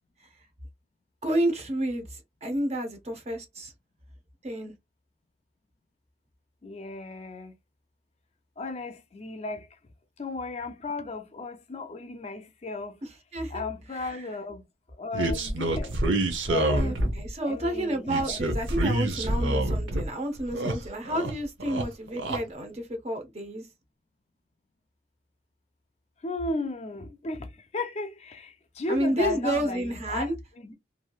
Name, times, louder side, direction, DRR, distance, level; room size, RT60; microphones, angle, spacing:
voice 1, 1.2-2.0 2.4-3.7 4.4-4.7 13.3-13.7 13.9-14.2 16.8-23.7 28.9-30.3, right 1 dB, 35° right, 0.7 m, -30 dB
voice 2, 6.6-7.5 8.6-9.7 10.2-13.0 13.5-14.6 15.0-16.0 16.5-17.0 17.4-18.4 26.2-30.7, left 3 dB, 35° left, 0.4 m, -35 dB
sound 1, 15.1-17.3 18.1-20.1 20.4-21.3 21.6-22.4, right 2 dB, 85° right, 0.7 m, -27 dB
3.0 x 2.6 x 2.3 m
head